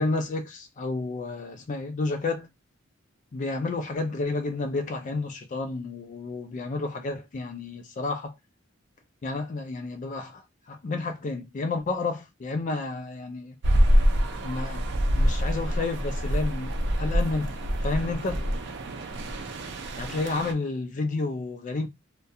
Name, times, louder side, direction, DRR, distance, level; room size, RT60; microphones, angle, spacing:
voice 1, 0.0-2.5 3.3-8.4 9.2-13.6 14.4-18.5 20.0-21.9, left 3 dB, 40° left, 0.4 m, -31 dB
sound 1, 13.6-20.5, equal, 60° right, 0.5 m, -25 dB
2.3 x 2.1 x 2.6 m
head